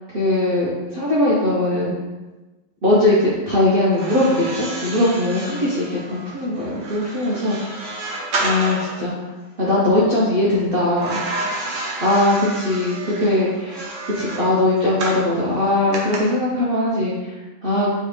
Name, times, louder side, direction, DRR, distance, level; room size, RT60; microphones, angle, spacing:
voice 1, 0.1-1.9 2.8-7.8 8.4-9.3 9.6-11.2 12.0-13.8 14.2-17.9, left 1 dB, 80° right, -7 dB, 0.5 m, -20 dB
sound 1, 3.9-9.0 11.0-15.3 15.9-16.2, right 2 dB, 55° right, 0.8 m, -30 dB
4.6 x 3.2 x 3.2 m, 1.1 s
omnidirectional pair, 2.2 m